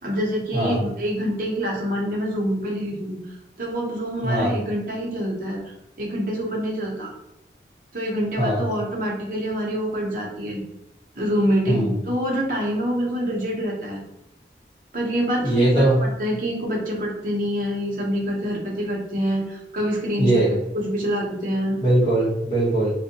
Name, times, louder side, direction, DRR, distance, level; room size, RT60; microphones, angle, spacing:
voice 1, 0.0-3.2 3.6-7.1 7.9-10.6 11.2-14.0 14.9-20.5 20.7-21.8, equal, 50° right, -2 dB, 0.7 m, -26 dB
voice 2, 0.5-0.8 4.2-4.5 8.4-8.6 11.7-11.9 15.4-16.0 20.2-20.5 21.8-22.9, right 1 dB, 30° left, -9 dB, 1.3 m, -20 dB
2.6 x 2.1 x 2.7 m, 0.85 s
head